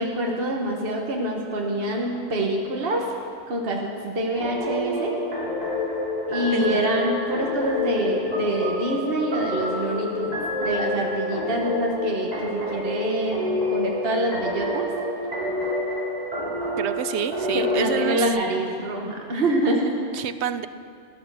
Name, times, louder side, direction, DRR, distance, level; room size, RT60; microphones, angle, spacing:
voice 1, 0.0-3.2 3.5-5.2 6.3-14.9 17.5-20.0, right 1 dB, 55° right, 0 dB, 1.5 m, -26 dB
sound 1, 4.3-18.3, left 1 dB, 35° right, 3.4 m, -28 dB
voice 2, 6.5-6.9 16.8-18.2 20.1-20.7, right 9 dB, 70° right, 13 dB, 0.9 m, -28 dB
15.0 x 11.5 x 6.9 m, 2.3 s
omnidirectional pair, 1.2 m